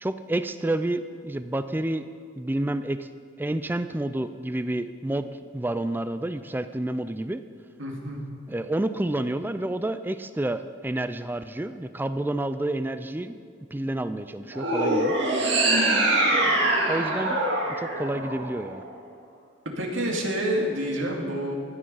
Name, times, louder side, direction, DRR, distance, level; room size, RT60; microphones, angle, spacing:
voice 1, 0.0-2.1 2.4-3.1 3.4-5.3 5.5-7.4 8.5-13.4 13.7-15.2 16.8-17.4 17.8-18.8, right 1 dB, 10° right, 11 dB, 0.3 m, -29 dB
voice 2, 7.8-8.2 19.7-21.5, right 1 dB, 75° right, 0 dB, 2.3 m, -28 dB
sound 1, 14.5-18.9, right 2 dB, 60° right, 1.9 m, -24 dB
15.5 x 10.0 x 5.5 m, 2.5 s
head